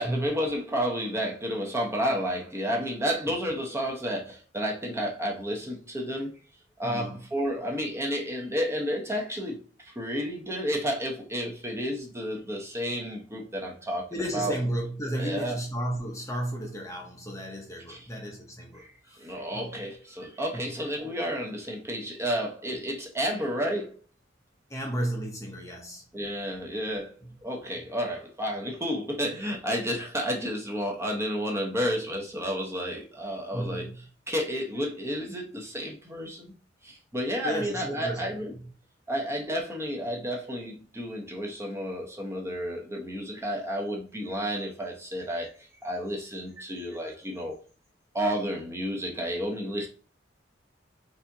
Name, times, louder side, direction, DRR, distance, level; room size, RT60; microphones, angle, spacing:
voice 1, 0.0-6.4 6.8-14.6 15.2-15.6 17.9-18.1 18.7-24.0 26.1-27.2 27.4-33.8 34.3-36.5 36.8-38.5 39.1-47.6 48.1-49.9, equal, 15° right, 0.8 m, -31 dB
voice 2, 6.8-7.2 14.1-19.7 20.5-20.7 24.7-26.0 27.2-27.4 33.5-34.0 37.4-38.3 38.5-38.7, right 1 dB, 15° left, 0.7 m, -33 dB
4.2 x 3.5 x 2.7 m
head